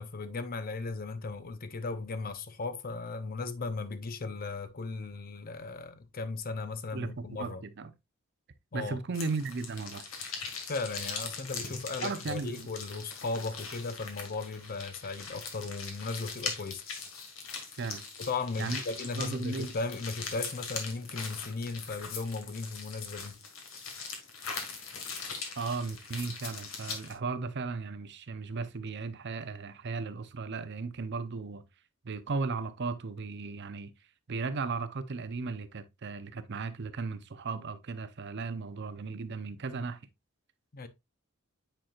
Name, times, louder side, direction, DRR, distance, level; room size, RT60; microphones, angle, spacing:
voice 1, 0.0-7.6 8.7-9.0 10.7-16.8 18.2-23.4 40.7-40.9, left 3 dB, 45° left, 0.7 m, -36 dB
voice 2, 6.9-7.9 8.7-10.0 12.0-12.7 17.8-18.0 18.6-18.8 19.2-19.7 25.6-31.6 32.0-33.9 34.3-40.0, right 4 dB, 55° right, 0.6 m, -36 dB
sound 1, 9.1-27.1, left 5 dB, 70° left, 1.8 m, -41 dB
9.0 x 4.4 x 2.4 m
head